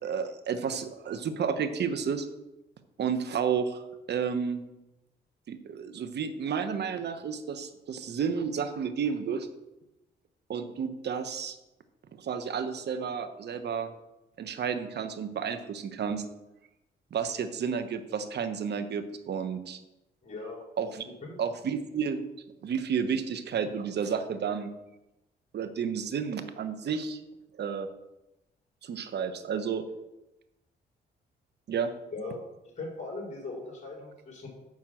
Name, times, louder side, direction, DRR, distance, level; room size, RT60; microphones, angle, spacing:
voice 1, 0.0-2.3 3.0-4.6 5.5-9.5 10.5-11.6 12.2-13.9 14.4-16.2 17.1-19.8 20.8-21.0 21.4-22.2 22.6-24.7 25.5-27.2 27.6-27.9 28.8-29.8 31.7-31.9, right 6 dB, 60° right, 9 dB, 1.1 m, -31 dB
voice 2, 20.2-20.6 21.2-21.4 32.1-32.4 32.6-34.5, left 3 dB, 40° left, -3 dB, 3.9 m, -39 dB
7.4 x 5.6 x 7.6 m, 0.94 s
cardioid pair, 75°, 19 cm